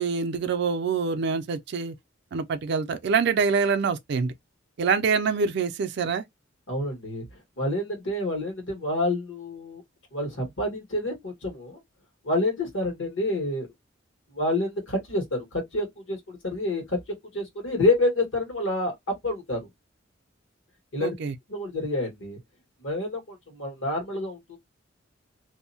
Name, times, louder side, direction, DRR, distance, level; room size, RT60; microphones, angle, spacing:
voice 1, 0.0-1.9 2.3-4.3 4.8-6.2 21.0-21.3, right 5 dB, 60° right, 0.4 m, -25 dB
voice 2, 6.7-7.2 7.6-9.8 10.1-11.8 12.2-13.7 14.3-17.0 17.3-19.7 20.9-21.1 21.5-22.4 22.8-24.6, left 2 dB, 75° left, 1.4 m, -28 dB
2.7 x 2.0 x 2.6 m
head